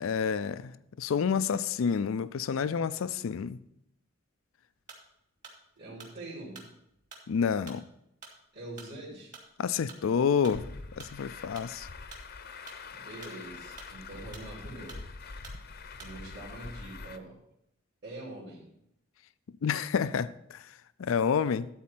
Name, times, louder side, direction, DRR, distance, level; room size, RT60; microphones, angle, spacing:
voice 1, 0.0-3.6 7.3-7.8 9.6-11.9 19.6-21.7, left 6 dB, 85° left, 0.4 m, -29 dB
sound 1, 4.8-16.4, right 3 dB, 40° right, 2.2 m, -50 dB
voice 2, 5.8-6.6 8.5-9.3 12.9-15.0 16.0-17.3 18.0-18.7, right 2 dB, 60° right, 3.0 m, -44 dB
Truck, 10.5-17.2, left 4 dB, 50° left, 0.7 m, -44 dB
13.0 x 4.3 x 7.4 m
head